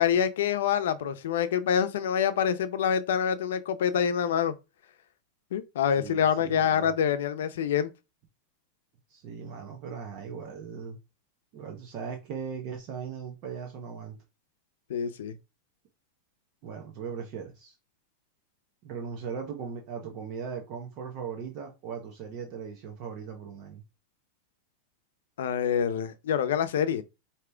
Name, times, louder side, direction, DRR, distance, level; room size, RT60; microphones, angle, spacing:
voice 1, 0.0-4.5 5.5-7.9 14.9-15.4 25.4-27.0, left 8 dB, 80° left, 0.7 m, -26 dB
voice 2, 6.0-6.9 9.1-11.0 11.5-14.2 16.6-17.7 18.8-23.8, right 6 dB, 40° right, 0.9 m, -38 dB
5.0 x 2.8 x 3.4 m
supercardioid pair, 165°, 0 cm